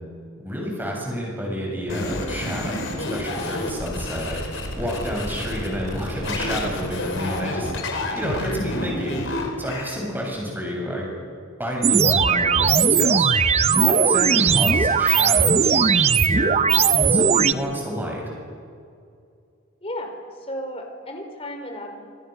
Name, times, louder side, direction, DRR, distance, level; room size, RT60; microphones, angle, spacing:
voice 1, 0.4-4.4 4.8-7.7 8.1-9.2 9.6-11.1 11.6-13.3 13.7-15.9 16.2-16.6 16.9-18.2, equal, 10° right, -2 dB, 7.8 m, -29 dB
sound 1, 1.9-10.0, left 1 dB, 65° left, 4.7 m, -29 dB
sound 2, 11.8-17.5, right 6 dB, 30° right, 0.7 m, -18 dB
voice 2, 19.8-22.0, equal, 30° left, 4 dB, 4.0 m, -34 dB
29.0 x 27.0 x 6.8 m, 2.4 s
head